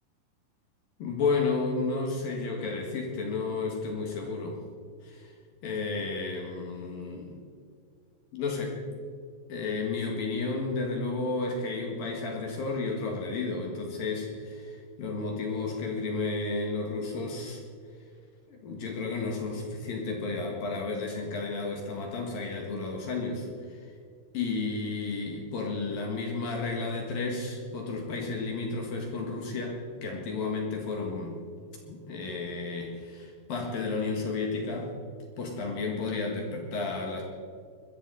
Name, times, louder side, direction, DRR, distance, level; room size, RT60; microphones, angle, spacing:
voice 1, 1.0-4.6 5.0-5.3 5.6-7.4 8.3-8.8 9.5-17.6 18.5-23.8 24.3-31.4 31.9-34.9 35.4-37.2, left 3 dB, 60° left, 1 dB, 2.9 m, -32 dB
22.0 x 14.5 x 4.0 m, 2.1 s
omnidirectional pair, 5.8 m